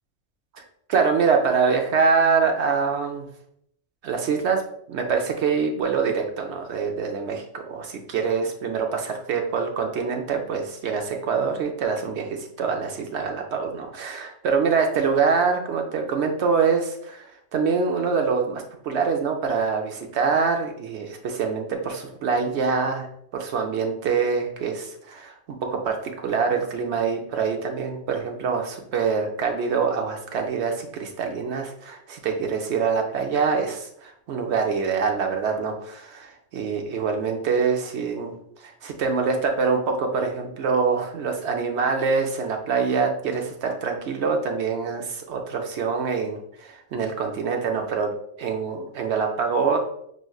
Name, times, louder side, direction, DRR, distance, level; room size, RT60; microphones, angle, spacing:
voice 1, 0.9-3.3 4.0-4.6 4.9-23.1 23.3-25.3 25.8-48.1 48.4-49.8, right 5 dB, 65° right, 3 dB, 0.8 m, -25 dB
4.9 x 3.1 x 2.3 m, 0.68 s
omnidirectional pair, 1.3 m